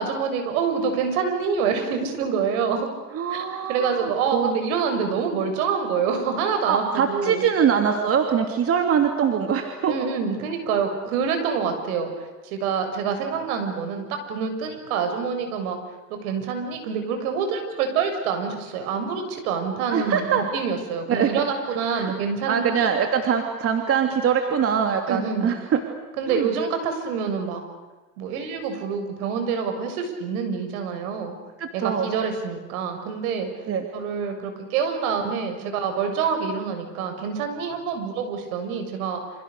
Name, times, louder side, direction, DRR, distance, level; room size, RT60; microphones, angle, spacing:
voice 1, 0.0-2.9 3.3-7.5 9.9-15.8 16.1-22.9 25.1-25.5 26.2-27.6 28.2-31.4 31.7-33.5 33.9-39.2, right 6 dB, 60° right, 6 dB, 7.0 m, -26 dB
voice 2, 3.1-4.5 6.7-10.0 19.9-20.4 21.1-21.3 21.9-22.1 22.5-25.8 26.3-26.5 31.6-32.1 33.7-33.9, right 7 dB, 30° right, 5 dB, 2.9 m, -23 dB
28.5 x 27.0 x 6.8 m, 1.2 s
hypercardioid pair, 110°, 47 cm